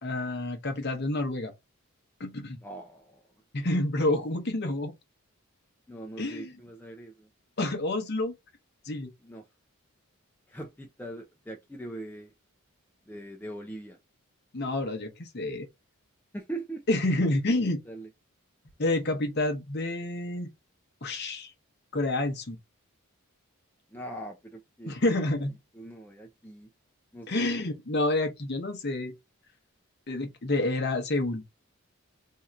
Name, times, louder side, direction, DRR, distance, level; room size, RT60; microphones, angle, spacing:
voice 1, 0.0-1.5 2.2-2.6 3.5-4.9 6.2-6.5 7.6-8.3 8.8-9.1 14.5-15.7 16.9-17.8 18.8-20.5 21.0-21.5 21.9-22.6 24.9-25.5 27.3-29.1 30.1-31.4, left 2 dB, 45° left, 0.8 m, -28 dB
voice 2, 2.6-3.2 3.6-3.7 5.9-7.3 9.2-9.4 10.5-12.3 13.1-14.0 16.3-16.9 17.9-18.1 23.9-25.0 25.8-26.7 27.1-27.7, right 1 dB, 10° left, 0.4 m, -41 dB
2.8 x 2.4 x 4.1 m
head